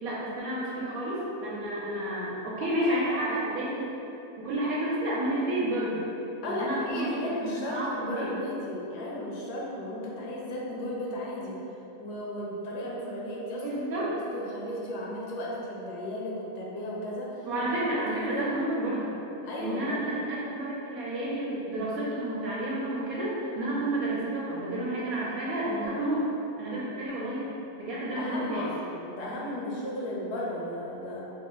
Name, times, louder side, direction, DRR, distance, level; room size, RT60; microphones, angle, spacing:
voice 1, 0.0-3.8 4.4-6.0 6.4-8.3 13.6-14.1 17.4-19.1 19.6-26.3 26.6-27.5 27.8-28.7, right 1 dB, 75° right, -7 dB, 1.0 m, -30 dB
voice 2, 2.8-3.5 6.4-11.6 12.0-17.5 17.9-18.6 19.4-20.2 25.9-26.0 26.7-27.1 28.1-31.3, left 1 dB, 90° left, -4 dB, 1.2 m, -35 dB
3.4 x 2.0 x 3.8 m, 3.0 s
omnidirectional pair, 1.7 m